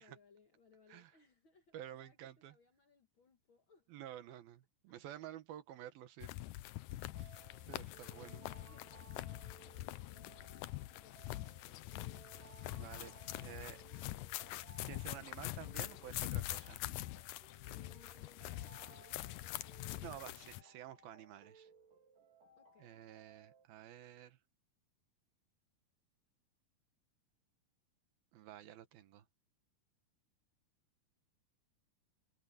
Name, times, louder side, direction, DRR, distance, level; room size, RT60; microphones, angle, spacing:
voice 1, 0.0-2.2 2.5-3.9 7.8-9.1 9.4-11.4 17.7-20.4 22.6-22.9, left 5 dB, 50° left, 1.7 m, -68 dB
voice 2, 1.7-2.6 3.9-6.3 7.2-7.4 7.7-8.4 12.7-13.1 13.4-13.8 14.9-16.8 20.0-21.7 22.8-24.4 28.3-29.3, right 12 dB, 85° right, 3.2 m, -51 dB
sound 1, 6.2-20.6, left 16 dB, 80° left, 1.9 m, -45 dB
sound 2, 6.9-23.7, right 6 dB, 65° right, 5.2 m, -63 dB
omnidirectional pair, 4.1 m